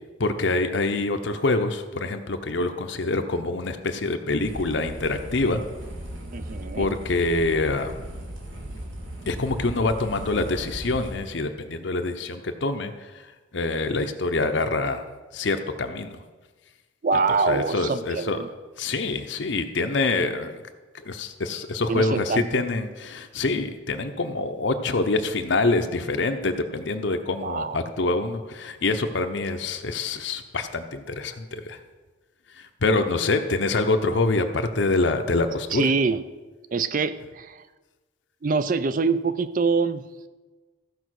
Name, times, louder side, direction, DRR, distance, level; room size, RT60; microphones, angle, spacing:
voice 1, 0.2-5.6 6.7-7.9 9.3-12.9 13.5-15.0 15.3-16.2 17.5-18.4 18.8-20.5 21.0-31.8 32.6-35.8, left 3 dB, 65° left, 7 dB, 0.8 m, -25 dB
sound 1, 4.4-11.1, equal, 75° right, 2.0 m, -37 dB
voice 2, 6.3-6.9 17.0-18.5 21.9-22.6 23.5-23.6 27.4-27.8 35.7-36.2 36.7-37.7 38.4-40.0, right 4 dB, 40° right, 13 dB, 0.4 m, -25 dB
15.0 x 5.1 x 6.3 m, 1.3 s
head